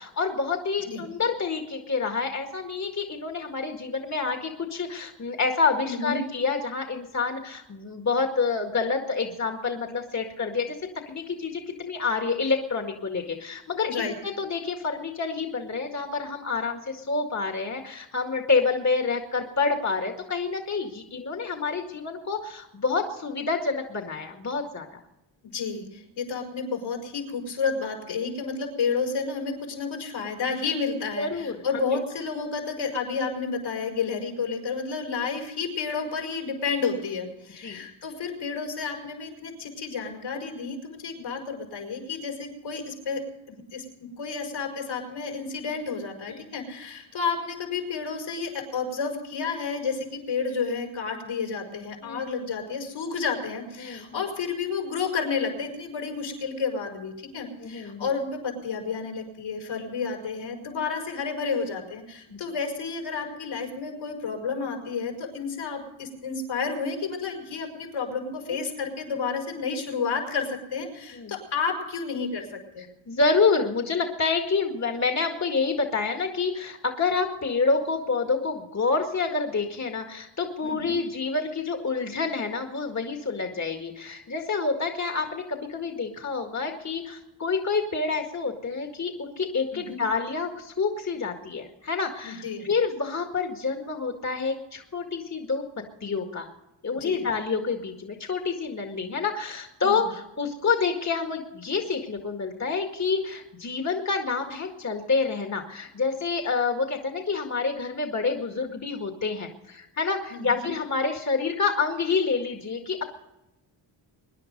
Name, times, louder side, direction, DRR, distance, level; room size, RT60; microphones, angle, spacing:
voice 1, 0.0-10.8 11.1-25.0 31.2-31.6 37.6-37.8 46.3-46.4 52.0-52.3 53.8-54.1 57.6-58.1 62.3-62.4 68.5-68.6 71.1-71.3 73.1-95.6 96.0-96.5 96.8-113.0, left 4 dB, 35° left, 3 dB, 1.9 m, -28 dB
voice 2, 5.9-6.2 13.8-14.1 25.4-43.2 43.5-72.8 80.6-81.0 89.7-90.0 92.2-92.6 96.9-97.2 99.8-100.0 110.3-110.7, left 5 dB, 75° left, 2 dB, 5.3 m, -31 dB
24.0 x 10.5 x 5.3 m, 0.91 s
cardioid pair, 85°, 47 cm